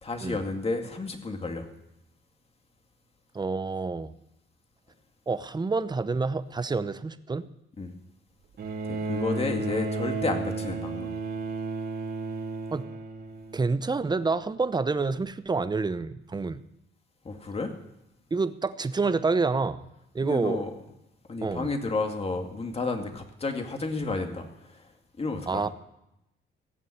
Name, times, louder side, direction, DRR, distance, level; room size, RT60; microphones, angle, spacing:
voice 1, 0.0-1.7 7.8-7.9 8.8-11.2 17.2-17.7 20.2-20.7 21.3-24.9 25.2-25.7, left 3 dB, 30° left, 4 dB, 2.3 m, -31 dB
voice 2, 3.3-4.1 5.3-7.5 12.7-12.9 13.5-16.6 18.3-19.9 20.1-20.6 21.4-21.7 25.5-25.7, right 4 dB, 20° right, 13 dB, 0.8 m, -28 dB
Bowed string instrument, 8.6-14.0 15.2-15.3, right 3 dB, 55° right, 2.4 m, -33 dB
16.5 x 7.3 x 9.9 m, 0.88 s
cardioid pair, 90°, 20 cm